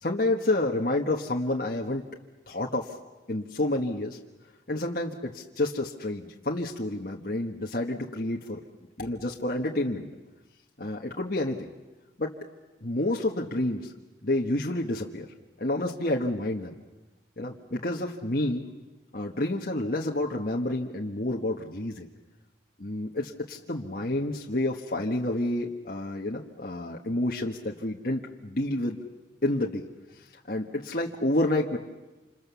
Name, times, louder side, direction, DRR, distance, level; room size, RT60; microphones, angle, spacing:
voice 1, 0.0-2.0 2.5-2.9 3.3-4.2 4.7-8.6 9.0-10.1 10.8-11.7 12.2-12.3 12.8-13.9 14.2-15.3 15.6-16.7 17.4-18.7 19.1-22.1 22.8-29.0 29.4-29.9 30.2-31.8, left 1 dB, 50° left, -1 dB, 1.5 m, -29 dB
27.5 x 27.5 x 7.1 m, 1.1 s
head